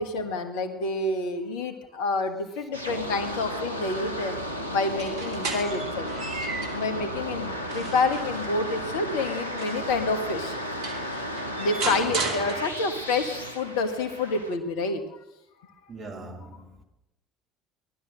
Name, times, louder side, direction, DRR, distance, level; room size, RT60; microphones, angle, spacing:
voice 1, 0.0-4.3 4.7-6.2 6.7-10.6 11.6-15.0, left 3 dB, 65° left, 1.6 m, -28 dB
sound 1, 2.7-14.6, equal, 90° right, 1.0 m, -34 dB
sound 2, 4.9-6.9 7.4-10.0 10.5-10.6 10.8-13.1, right 3 dB, 60° right, 2.3 m, -35 dB
voice 2, 12.0-12.6 15.9-16.8, right 2 dB, 35° right, 2.7 m, -42 dB
18.0 x 12.0 x 6.3 m
figure-of-eight pair, 60°, 0 cm